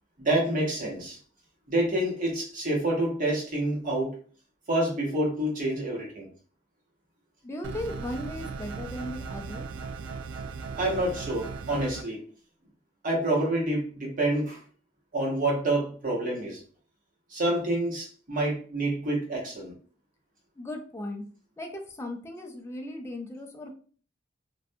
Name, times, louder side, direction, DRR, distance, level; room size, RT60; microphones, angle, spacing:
voice 1, 0.2-1.2 1.7-4.1 4.7-6.3 10.8-12.2 13.0-14.6 15.1-16.6 17.3-19.7, right 1 dB, 45° right, -3 dB, 1.0 m, -27 dB
voice 2, 7.4-9.6 20.6-21.2 21.6-23.7, left 1 dB, 15° left, 2 dB, 0.4 m, -37 dB
sound 1, 7.6-12.0, right 4 dB, 90° right, 0.3 m, -37 dB
2.5 x 2.2 x 2.6 m, 0.43 s
head